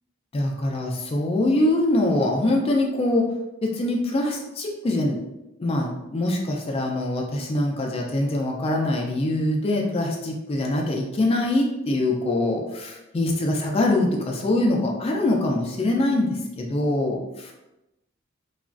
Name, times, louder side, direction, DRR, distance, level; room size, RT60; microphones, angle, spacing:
voice 1, 0.3-3.3 3.6-5.2 5.6-17.5, left 1 dB, 30° left, 0 dB, 0.3 m, -23 dB
2.9 x 2.4 x 2.4 m, 0.93 s
head